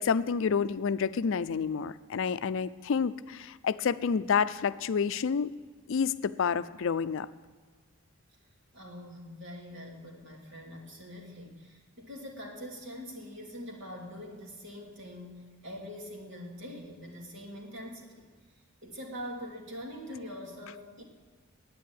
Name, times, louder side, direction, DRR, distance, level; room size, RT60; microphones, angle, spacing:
voice 1, 0.0-5.5 5.9-7.3, left 6 dB, 65° left, 14 dB, 0.4 m, -29 dB
voice 2, 8.7-18.3 18.8-21.0, equal, 60° right, 0 dB, 2.7 m, -43 dB
10.5 x 9.2 x 8.6 m, 1.5 s
head